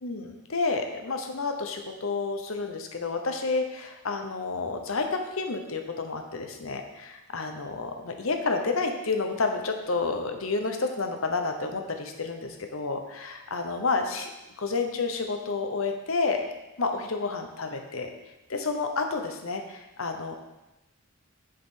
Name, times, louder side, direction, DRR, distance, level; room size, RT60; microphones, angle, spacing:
voice 1, 0.0-14.3 14.6-16.5 16.8-18.1 18.5-20.3, left 3 dB, 70° left, 5 dB, 0.9 m, -30 dB
7.7 x 6.7 x 3.8 m, 1.0 s
head